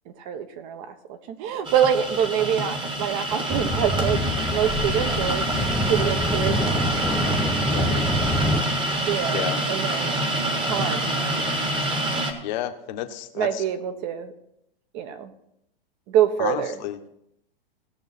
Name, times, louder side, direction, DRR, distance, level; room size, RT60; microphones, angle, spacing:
voice 1, 0.2-5.5 5.8-6.9 9.1-10.2 10.6-11.1 13.4-14.3 14.9-15.3 16.1-16.8, right 9 dB, 40° right, 9 dB, 1.3 m, -26 dB
sound 1, 1.6-12.3, right 1 dB, 15° right, 1.5 m, -26 dB
sound 2, 3.5-8.6, left 1 dB, ahead, 0.7 m, -26 dB
voice 2, 7.7-8.0 9.3-9.6 12.4-13.6 16.4-17.0, left 12 dB, 50° left, 6 dB, 1.3 m, -31 dB
17.5 x 6.3 x 4.2 m, 0.79 s
hypercardioid pair, 130°, 30 cm